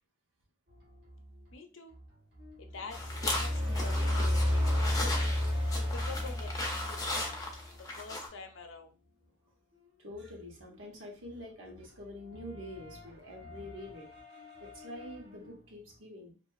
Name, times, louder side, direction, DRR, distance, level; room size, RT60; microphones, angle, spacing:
sound 1, 0.7-16.0, left 2 dB, 55° right, 1.0 m, -54 dB
voice 1, 1.5-1.9 2.6-5.2 5.7-7.3 7.8-8.9 11.6-11.8, left 4 dB, 90° left, 5 dB, 0.6 m, -47 dB
sound 2, 2.8-7.5, left 1 dB, 25° right, 0.6 m, -31 dB
sound 3, 2.9-8.3, left 2 dB, 20° left, 0.4 m, -37 dB
voice 2, 10.0-14.1 14.6-16.4, left 1 dB, 90° right, -1 dB, 1.0 m, -46 dB
2.7 x 2.5 x 2.3 m, 0.34 s
head